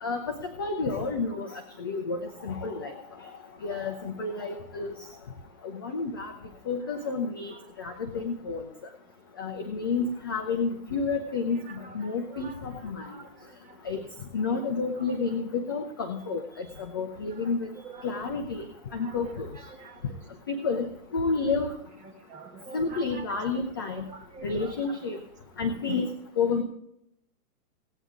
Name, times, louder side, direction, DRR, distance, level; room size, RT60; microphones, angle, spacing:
voice 1, 0.0-1.5 1.8-2.9 3.6-4.9 5.8-6.3 6.7-7.5 7.8-8.6 9.4-13.1 13.8-14.0 14.3-17.7 18.0-18.6 18.9-19.5 20.5-21.7 22.7-24.0 24.4-25.2 25.6-26.1 26.4-26.6, left 4 dB, 15° left, 5 dB, 0.4 m, -30 dB
voice 2, 12.3-12.6 13.1-13.3 17.4-17.5 17.8-18.0 19.0-19.9 22.3-23.4 24.3-25.0, right 4 dB, 15° right, 4 dB, 1.4 m, -46 dB
16.5 x 9.2 x 3.7 m, 0.78 s
hypercardioid pair, 145°, 45 cm